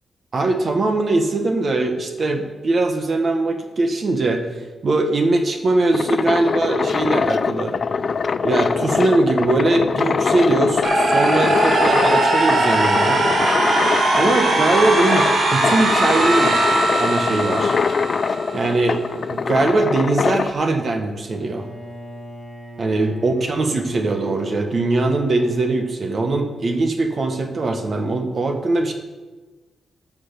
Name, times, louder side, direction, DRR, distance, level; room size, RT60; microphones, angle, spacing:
voice 1, 0.3-4.5 4.8-7.8 8.4-13.2 14.1-16.6 17.0-17.8 18.5-19.0 19.3-21.7 22.8-28.9, right 2 dB, 40° right, 5 dB, 1.1 m, -21 dB
sound 1, 5.7-20.5, left 5 dB, 45° left, 0.4 m, -23 dB
sound 2, 10.8-18.7, right 2 dB, 60° right, 2.9 m, -20 dB
Bowed string instrument, 21.2-26.0, left 1 dB, 20° right, 3.6 m, -36 dB
12.0 x 6.1 x 6.8 m, 1.3 s
wide cardioid pair, 135°, 0 cm